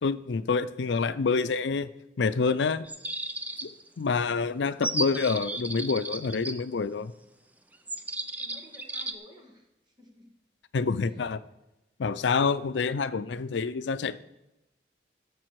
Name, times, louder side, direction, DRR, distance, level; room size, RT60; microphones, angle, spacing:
voice 1, 0.0-1.9 2.2-2.9 3.6-3.7 4.0-7.1 10.7-11.4 12.0-14.2, left 4 dB, 85° left, 15 dB, 0.5 m, -27 dB
sound 1, 2.8-3.9 4.8-6.5 7.9-9.1, right 2 dB, 10° right, 0.5 m, -34 dB
voice 2, 8.4-9.6 10.0-10.3 11.0-11.2 12.5-12.9, equal, 25° right, 1 dB, 1.7 m, -54 dB
16.5 x 6.8 x 4.7 m, 0.93 s
head